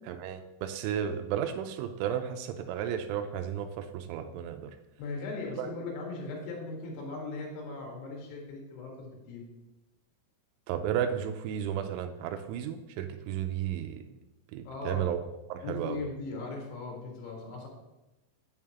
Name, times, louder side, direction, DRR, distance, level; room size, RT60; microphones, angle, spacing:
voice 1, 0.1-4.7 5.6-5.7 10.7-14.0 14.5-15.2 15.5-16.0, right 9 dB, 85° right, 7 dB, 2.7 m, -33 dB
voice 2, 5.0-9.4 14.7-15.0 15.6-17.7, left 3 dB, 85° left, -1 dB, 4.3 m, -38 dB
8.2 x 7.4 x 2.9 m, 1.0 s
omnidirectional pair, 5.9 m